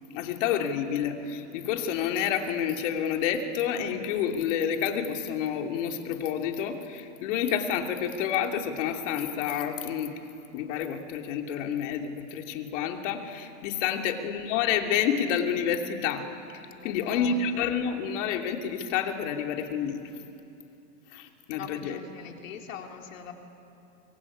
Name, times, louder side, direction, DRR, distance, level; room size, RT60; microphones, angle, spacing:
voice 1, 0.1-10.1 10.5-20.0 21.1-22.0, left 8 dB, 70° left, 4 dB, 2.9 m, -29 dB
voice 2, 13.8-14.3 16.7-17.5 21.5-23.3, left 7 dB, 85° left, 2 dB, 3.8 m, -43 dB
25.0 x 23.0 x 10.0 m, 2.8 s
supercardioid pair, 120°, 38 cm